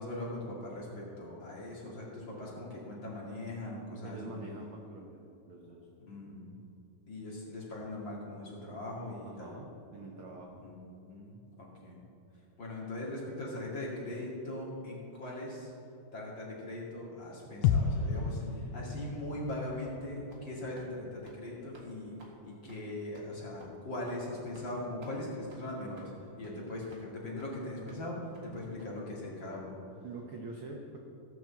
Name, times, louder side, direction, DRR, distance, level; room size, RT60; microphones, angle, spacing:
voice 1, 0.0-4.3 6.0-6.6 7.1-9.5 10.6-12.0 12.6-15.7 16.1-22.1 22.4-26.1 26.4-28.2 28.4-29.7, left 1 dB, 40° left, -5 dB, 2.8 m, -40 dB
voice 2, 4.0-5.2 5.5-5.9 9.2-10.6 17.4-17.6 26.5-26.6 27.3-27.4 30.0-31.0, right 2 dB, 65° right, 0 dB, 1.4 m, -45 dB
sound 1, 17.6-21.6 21.9-22.0, left 6 dB, 85° left, 2.2 m, -33 dB
sound 2, 19.8-20.0 20.3-20.5 20.7-20.9 21.2-21.4 21.7-21.9 22.2-22.3 22.7-22.8 23.1-23.3 23.6-23.7 24.1-24.2 24.5-24.7 25.0-25.2 25.5-25.6 25.9-26.1 26.4-26.5 26.9-27.0 27.4-27.5 27.9-28.0 28.3-28.5 28.8-28.9, right 1 dB, 35° right, 1.7 m, -57 dB
16.5 x 6.3 x 7.2 m, 2.7 s
omnidirectional pair, 3.7 m